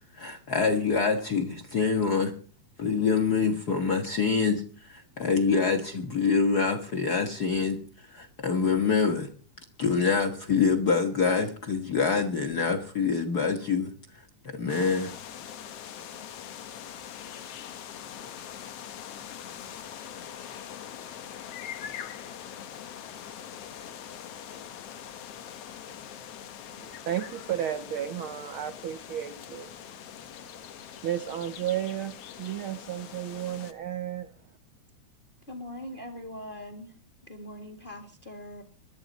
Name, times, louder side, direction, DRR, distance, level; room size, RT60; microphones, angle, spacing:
voice 1, 0.2-2.3 2.8-4.6 4.9-7.8 8.1-9.3 9.8-13.9 14.5-15.1, left 5 dB, 45° left, 1.4 m, -25 dB
sound 1, 14.7-33.7, left 9 dB, 60° left, 2.0 m, -43 dB
voice 2, 26.7-29.7 30.4-30.5 31.0-34.3, right 11 dB, 65° right, 1.3 m, -33 dB
voice 3, 35.5-36.9 37.2-38.6, left 1 dB, 20° left, 1.7 m, -41 dB
21.5 x 13.0 x 4.1 m
omnidirectional pair, 3.4 m